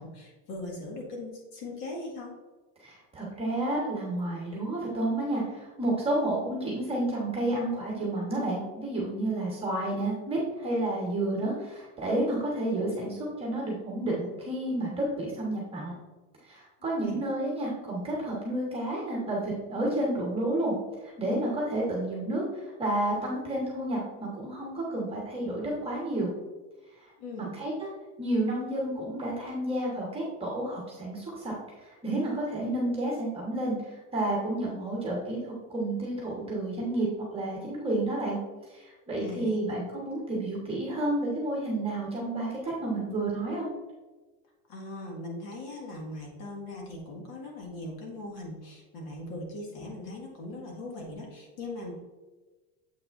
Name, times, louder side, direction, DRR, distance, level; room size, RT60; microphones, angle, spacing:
voice 1, 0.0-2.3 17.0-17.2 27.2-27.5 39.1-39.8 44.7-51.9, left 2 dB, 60° left, -1 dB, 1.9 m, -40 dB
voice 2, 2.8-15.9 16.4-20.7 21.0-26.3 27.0-27.1 27.4-27.9 28.2-31.5 31.8-38.4 38.7-43.7, right 1 dB, 15° right, -3 dB, 1.3 m, -30 dB
7.5 x 5.9 x 2.6 m, 1.2 s
supercardioid pair, 155°, 42 cm